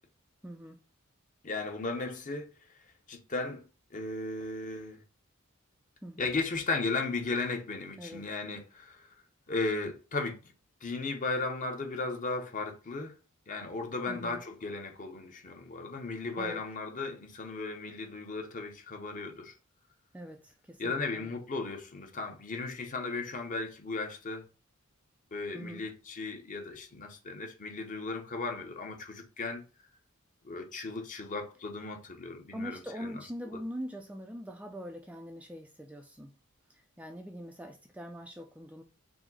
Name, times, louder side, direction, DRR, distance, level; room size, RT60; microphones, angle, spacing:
voice 1, 0.4-0.8 6.0-6.3 8.0-8.2 14.1-14.4 16.4-16.6 20.1-21.3 25.5-25.8 32.5-36.3 36.7-38.8, equal, 5° right, 0.4 m, -42 dB
voice 2, 1.4-2.5 3.1-3.6 3.9-5.0 6.2-9.1 9.5-10.4 10.8-13.2 13.5-19.5 20.8-24.5 25.3-29.6 30.4-33.1, left 3 dB, 40° left, 0.7 m, -36 dB
4.8 x 2.1 x 3.8 m
head